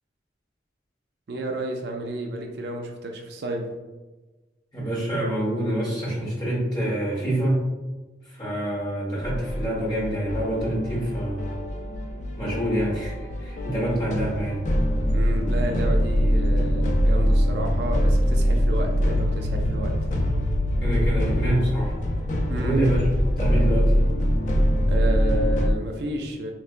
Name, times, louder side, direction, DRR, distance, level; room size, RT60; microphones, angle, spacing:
voice 1, 1.3-3.7 15.1-19.9 22.5-22.8 24.9-26.5, right 1 dB, 60° right, 2 dB, 0.4 m, -31 dB
voice 2, 4.7-7.7 8.3-11.5 12.4-13.1 13.4-14.6 20.8-21.9 22.6-23.1 23.4-24.0, right 1 dB, 20° left, -6 dB, 1.2 m, -26 dB
sound 1, 9.2-25.7, equal, 40° left, 0.4 m, -23 dB
3.6 x 3.2 x 2.4 m, 1.2 s
head